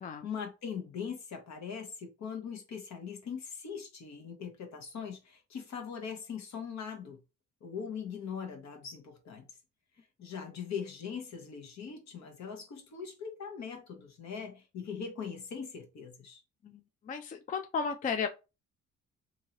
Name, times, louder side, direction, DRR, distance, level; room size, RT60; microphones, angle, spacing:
voice 1, 0.2-7.2 7.6-9.5 10.2-16.4, left 6 dB, 65° left, 1.1 m, -41 dB
voice 2, 17.1-18.3, left 6 dB, 30° left, 0.4 m, -33 dB
2.8 x 2.7 x 2.8 m
cardioid pair, 90°, 30 cm